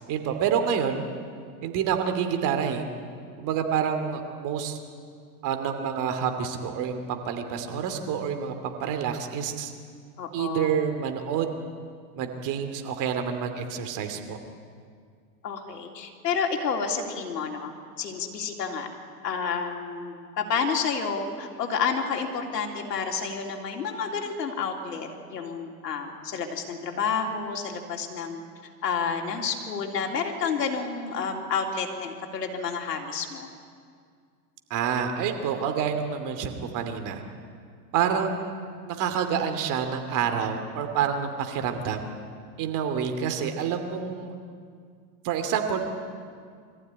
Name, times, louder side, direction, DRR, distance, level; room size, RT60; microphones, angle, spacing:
voice 1, 0.1-1.0 1.6-2.8 3.4-4.8 5.4-9.7 10.3-11.5 12.2-14.4 34.7-37.2 37.9-38.5 38.9-42.1 42.6-44.4 45.2-45.8, right 7 dB, 40° right, 6 dB, 2.8 m, -28 dB
voice 2, 10.2-10.7 15.4-17.7 18.0-18.9 19.2-28.4 28.8-33.5, left 5 dB, 80° left, 2 dB, 3.6 m, -30 dB
23.5 x 15.0 x 9.7 m, 2.1 s
hypercardioid pair, 120°, 48 cm